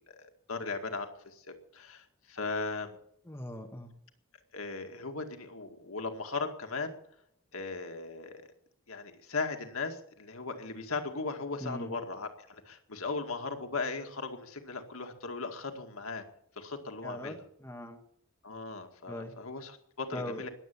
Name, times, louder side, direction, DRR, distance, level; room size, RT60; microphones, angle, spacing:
voice 1, 0.2-3.0 4.5-7.0 7.5-8.4 8.9-16.2 16.6-17.4 18.4-20.5, left 3 dB, 80° left, 5 dB, 2.1 m, -38 dB
voice 2, 3.3-3.9 11.6-11.9 17.0-18.0 19.1-19.3 20.1-20.4, left 1 dB, 10° left, 3 dB, 1.7 m, -40 dB
20.5 x 8.1 x 8.5 m, 0.72 s
head